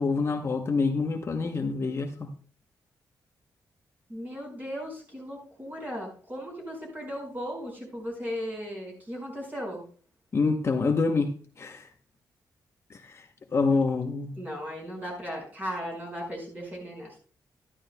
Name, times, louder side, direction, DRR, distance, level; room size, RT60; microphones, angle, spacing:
voice 1, 0.0-2.3 10.3-11.3 11.6-11.9 12.9-14.4, left 4 dB, 40° left, 4 dB, 0.8 m, -27 dB
voice 2, 4.1-9.8 14.4-17.2, equal, 25° right, -1 dB, 5.2 m, -36 dB
12.5 x 11.5 x 2.2 m, 0.41 s
wide cardioid pair, 135°, 7 cm